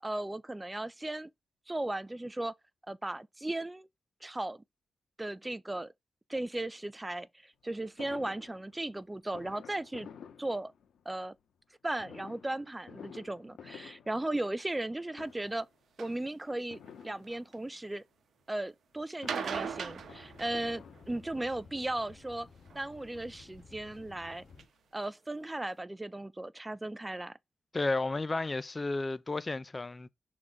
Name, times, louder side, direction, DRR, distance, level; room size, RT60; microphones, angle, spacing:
voice 1, 0.0-1.3 1.7-2.5 2.9-3.9 4.2-4.6 5.2-5.9 6.3-10.1 10.4-10.7 11.1-11.3 11.8-15.7 16.0-18.0 18.5-22.5 22.7-24.5 24.9-27.4, right 1 dB, 15° right, 0.5 m, -36 dB
Fireworks, 8.0-11.2 12.0-14.9 15.1-15.8 16.7-17.8 18.9-21.6 22.4-22.5 22.8-22.9 23.2-24.4 24.8-24.9 25.0-25.1, left 7 dB, 80° left, 1.4 m, -52 dB
sound 1, 16.0-16.2 16.9-17.5 19.1-21.1 22.7-23.2 23.9-24.0 24.6-24.7 25.0-25.1 25.3-25.4, right 7 dB, 70° right, 0.9 m, -39 dB
sound 2, 19.5-24.6, left 4 dB, 45° left, 3.0 m, -55 dB
voice 2, 27.7-30.1, left 2 dB, 25° left, 0.6 m, -32 dB
6.2 x 3.8 x 4.7 m
cardioid pair, 80°, 0 cm